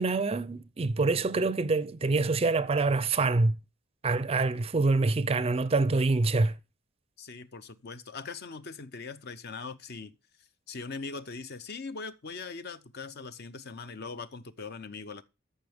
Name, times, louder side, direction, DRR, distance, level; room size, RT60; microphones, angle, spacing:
voice 1, 0.0-3.6 4.0-6.5, right 3 dB, 30° right, 0.4 m, -26 dB
voice 2, 7.2-10.2 10.7-15.2, left 4 dB, 55° left, 0.7 m, -41 dB
14.0 x 5.6 x 3.5 m
head